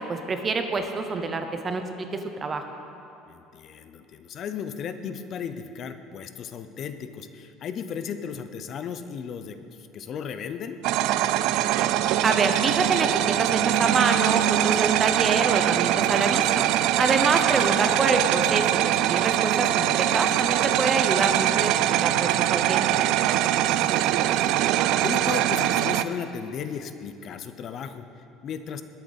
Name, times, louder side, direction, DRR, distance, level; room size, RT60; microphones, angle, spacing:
voice 1, 0.1-1.8 2.4-2.6 12.2-16.7 17.0-21.8 22.0-22.9, right 3 dB, 25° right, 6 dB, 0.8 m, -26 dB
voice 2, 3.3-10.8 17.0-17.8 23.6-28.8, left 7 dB, 40° left, 10 dB, 0.6 m, -36 dB
sound 1, 10.8-26.0, right 13 dB, 65° right, 0.4 m, -23 dB
20.0 x 8.4 x 4.1 m, 2.7 s
cardioid pair, 150°, 0 cm